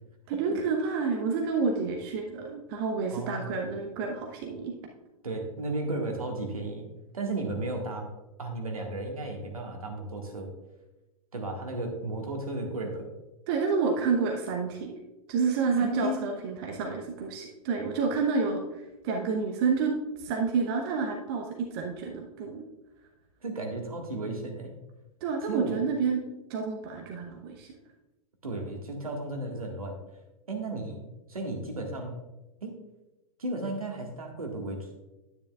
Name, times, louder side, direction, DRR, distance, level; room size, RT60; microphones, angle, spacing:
voice 1, 0.3-4.7 13.5-14.9 15.3-18.6 19.0-19.9 20.2-22.6 25.2-26.2 26.5-27.7, right 5 dB, 40° right, 2 dB, 1.0 m, -29 dB
voice 2, 3.1-3.5 5.2-6.9 7.1-8.1 8.4-10.5 11.3-13.1 15.8-16.2 23.4-24.7 25.4-25.8 28.4-30.0 30.5-32.2 32.6-32.8 33.4-34.9, right 2 dB, 75° right, 2 dB, 1.7 m, -34 dB
10.0 x 9.7 x 2.4 m, 1.0 s
figure-of-eight pair, 100°, 19 cm